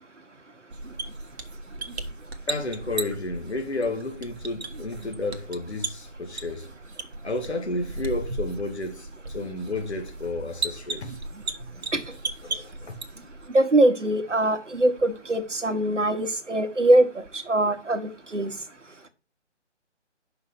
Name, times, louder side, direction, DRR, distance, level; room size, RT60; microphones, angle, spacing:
sound 1, 0.7-13.5, right 3 dB, 60° right, 1.1 m, -36 dB
voice 1, 2.5-6.7 7.2-11.2 11.6-11.7 12.4-13.0, left 2 dB, 60° left, 2.0 m, -32 dB
voice 2, 13.5-18.5, right 1 dB, 80° right, 1.5 m, -22 dB
5.8 x 5.6 x 5.8 m
figure-of-eight pair, 150°, 36 cm